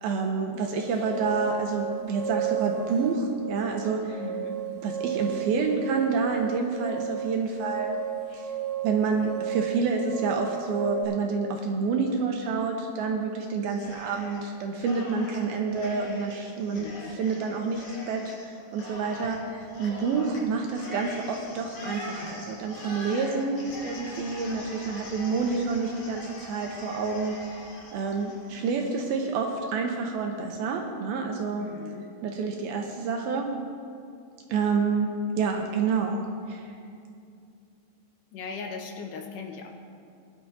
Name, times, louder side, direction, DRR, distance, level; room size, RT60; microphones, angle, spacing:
voice 1, 0.0-4.2 4.8-8.0 8.3-8.4 8.8-27.4 27.9-31.7 32.2-33.5 34.5-36.7, right 4 dB, 75° right, 2 dB, 2.4 m, -28 dB
sound 1, 0.7-11.0, right 8 dB, 45° right, 3.1 m, -33 dB
voice 2, 4.1-4.6 16.7-17.2 31.6-32.1 38.3-39.7, left 4 dB, 80° left, 2 dB, 3.2 m, -38 dB
Cheering, 13.6-14.5 14.8-29.2, left 1 dB, 55° left, 4.7 m, -43 dB
20.5 x 10.5 x 2.8 m, 2.4 s
omnidirectional pair, 4.9 m